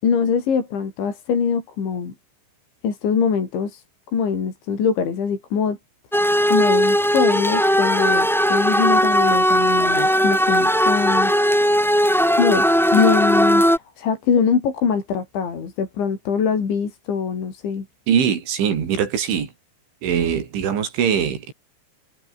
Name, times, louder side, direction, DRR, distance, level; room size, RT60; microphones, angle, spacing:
voice 1, 0.0-2.1 2.8-5.8 6.1-11.3 12.4-12.7 12.9-17.9, left 6 dB, 75° left, 7.4 m, -23 dB
sound 1, 6.1-13.8, equal, ahead, 4.1 m, -18 dB
voice 2, 18.1-19.5 20.0-21.5, right 8 dB, 90° right, 6.4 m, -22 dB
omnidirectional pair, 5.3 m